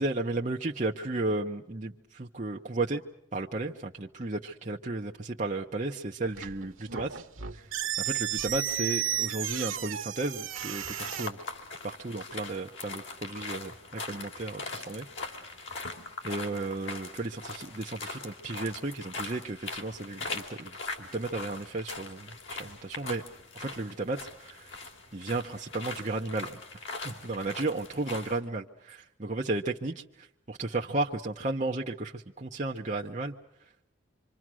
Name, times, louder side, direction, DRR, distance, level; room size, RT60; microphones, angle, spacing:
voice 1, 0.0-3.0 3.3-7.2 8.0-11.4 11.8-15.1 16.2-20.7 21.0-23.2 23.6-24.7 25.1-26.6 27.0-30.0 30.5-33.3, right 2 dB, 35° right, 0 dB, 0.9 m, -34 dB
sound 1, 6.2-11.3, right 11 dB, 90° right, 1.1 m, -33 dB
sound 2, 10.5-28.4, left 3 dB, 75° left, 3.2 m, -41 dB
26.5 x 25.5 x 6.2 m, 0.82 s
head